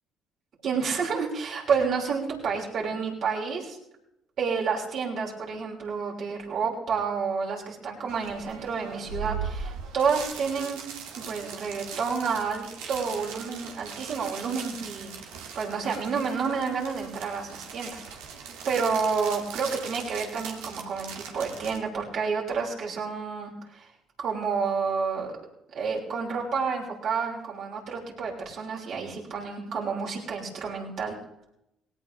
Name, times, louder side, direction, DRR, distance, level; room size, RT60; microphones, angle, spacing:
voice 1, 0.6-3.8 4.4-10.8 11.2-18.0 18.3-23.9 24.2-25.4 25.7-31.1, right 5 dB, 60° right, -1 dB, 5.8 m, -30 dB
sound 1, 8.1-21.8, right 6 dB, 85° right, 2.4 m, -40 dB
19.5 x 18.0 x 3.5 m, 0.83 s
supercardioid pair, 65°, 0 cm